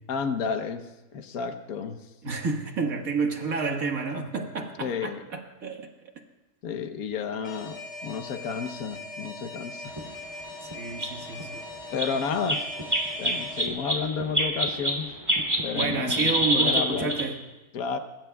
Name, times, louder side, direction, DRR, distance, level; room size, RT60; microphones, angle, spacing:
voice 1, 0.1-0.8 1.1-2.0 4.8-5.2 6.6-9.9 11.9-12.7 13.2-15.1 15.6-17.1 17.7-18.0, left 6 dB, 70° left, 7 dB, 1.4 m, -31 dB
voice 2, 2.2-6.2 10.6-11.6 15.7-17.4, right 4 dB, 65° right, 2 dB, 2.0 m, -30 dB
Alarm, 7.4-13.7, left 2 dB, 50° left, 1.6 m, -41 dB
sound 1, 10.0-10.1 10.7-10.8 11.0-11.1 11.4-11.5 12.0-12.2 12.5-15.0 15.3-17.2, right 1 dB, 20° right, 2.8 m, -25 dB
24.0 x 21.5 x 2.3 m, 1.1 s
omnidirectional pair, 1.6 m